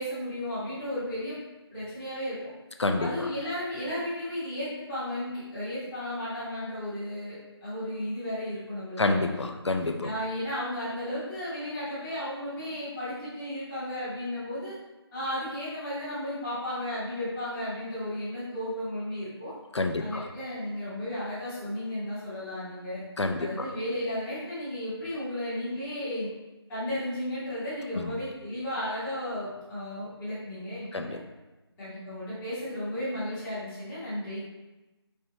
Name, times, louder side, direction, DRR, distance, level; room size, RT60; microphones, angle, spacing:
voice 1, 0.0-1.4 1.7-2.4 3.0-9.4 10.0-14.7 15.1-19.5 20.0-23.0 23.4-26.3 26.7-31.2 31.8-34.4, left 1 dB, 5° left, -14 dB, 0.6 m, -34 dB
voice 2, 9.0-10.1 19.7-20.2 23.2-23.7 28.0-28.1 30.9-31.2, left 2 dB, 85° left, 5 dB, 0.5 m, -28 dB
4.3 x 3.2 x 2.8 m, 1.1 s
figure-of-eight pair, 165°, 14 cm